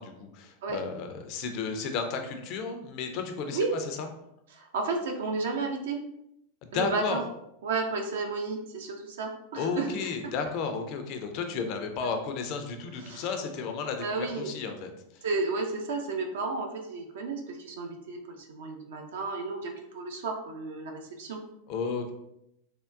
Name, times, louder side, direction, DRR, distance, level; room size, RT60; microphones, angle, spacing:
voice 1, 0.0-4.1 6.6-7.2 9.6-15.2 21.7-22.1, left 5 dB, 40° left, 5 dB, 0.4 m, -33 dB
voice 2, 4.5-6.0 6.7-7.2 7.6-9.9 13.0-13.3 14.0-14.5 15.2-21.4, right 3 dB, 60° right, 2 dB, 0.4 m, -32 dB
3.5 x 2.1 x 2.4 m, 0.81 s
figure-of-eight pair, 90°, 0 cm